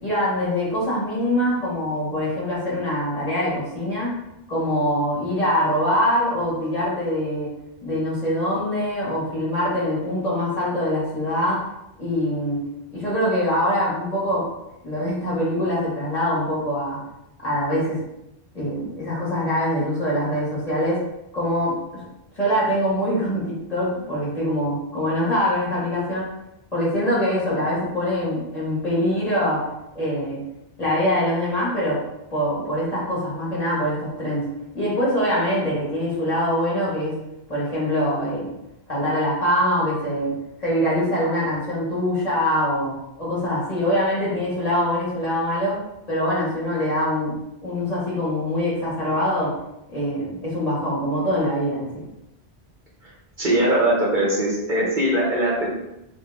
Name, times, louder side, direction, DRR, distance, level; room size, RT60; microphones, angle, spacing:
voice 1, 0.0-4.1 4.5-7.5 7.8-11.6 12.0-12.6 12.9-14.5 14.8-17.0 17.4-18.0 18.5-21.0 21.3-22.0 22.4-26.3 26.7-29.7 30.0-30.4 30.8-32.0 32.3-34.5 34.7-37.2 37.5-38.5 38.9-45.8 46.1-49.5 49.9-51.9, equal, 35° left, -8 dB, 1.9 m, -23 dB
voice 2, 53.4-55.7, right 1 dB, 50° right, -4 dB, 1.2 m, -21 dB
3.9 x 3.7 x 3.6 m, 0.88 s
omnidirectional pair, 1.1 m